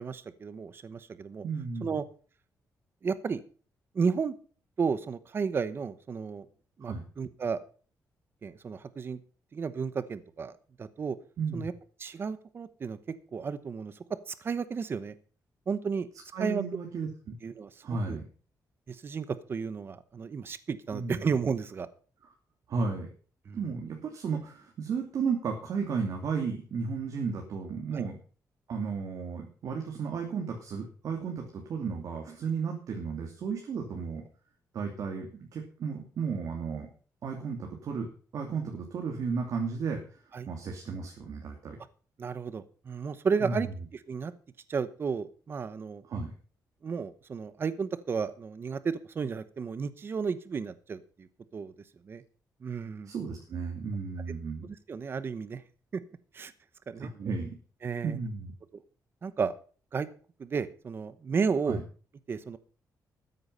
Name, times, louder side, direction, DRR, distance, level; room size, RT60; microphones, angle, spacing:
voice 1, 0.0-1.4 1.8-2.0 3.0-3.4 3.9-4.3 4.8-6.5 6.8-7.6 8.4-9.2 9.5-11.2 11.5-11.7 12.0-13.0 13.3-13.9 14.3-15.1 15.7-16.1 16.4-16.6 17.4-18.2 18.9-21.9 23.5-23.6 27.9-28.0 40.3-40.5 42.2-44.3 44.7-46.0 46.8-51.7 52.0-52.2 52.6-53.1 54.6-55.6 56.3-56.5 56.9-57.1 57.8-58.2 59.2-59.5 59.9-60.1 60.4-61.8 62.3-62.6, right 5 dB, 35° right, 14 dB, 0.9 m, -33 dB
voice 2, 1.4-1.9 6.8-7.0 11.4-11.7 16.3-17.3 17.8-18.2 20.9-21.2 22.7-23.1 23.5-28.2 28.7-34.2 34.7-36.9 37.2-38.1 38.3-40.0 40.5-41.8 43.4-43.6 46.1-46.3 53.1-54.7 57.0-57.5 58.0-58.5 61.7-61.8, right 5 dB, 55° right, 2 dB, 2.7 m, -34 dB
13.5 x 9.8 x 5.6 m, 0.40 s
wide cardioid pair, 165°, 7 cm